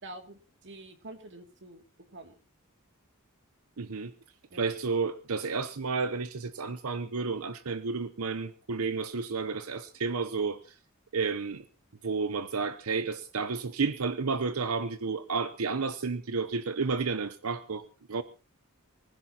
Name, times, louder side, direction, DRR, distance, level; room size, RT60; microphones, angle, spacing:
voice 1, 0.0-1.8 2.1-2.3 4.5-4.7, right 2 dB, 60° right, 5 dB, 2.5 m, -47 dB
voice 2, 3.8-4.1 4.5-10.7 11.1-11.6 12.0-18.2, right 4 dB, 75° right, 12 dB, 0.8 m, -31 dB
24.0 x 15.5 x 2.9 m, 0.34 s
head